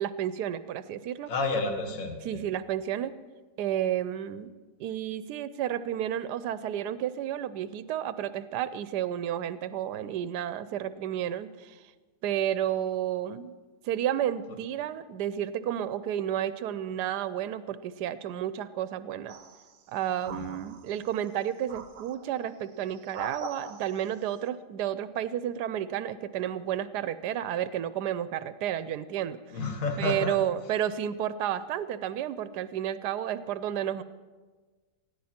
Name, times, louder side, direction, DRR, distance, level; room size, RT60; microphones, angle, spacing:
voice 1, 0.0-1.3 2.2-3.1 3.6-4.5 4.8-11.8 12.2-13.6 13.8-19.4 19.9-29.4 30.0-34.0, right 10 dB, 80° right, 13 dB, 1.2 m, -31 dB
voice 2, 1.3-2.4 20.3-20.5 29.5-30.4, left 3 dB, 55° left, 4 dB, 1.8 m, -30 dB
sound 1, 19.3-19.8 20.2-21.1 21.7-22.3 22.9-24.1, right 4 dB, 60° right, 1.1 m, -42 dB
20.0 x 14.0 x 4.4 m, 1.3 s
omnidirectional pair, 1.8 m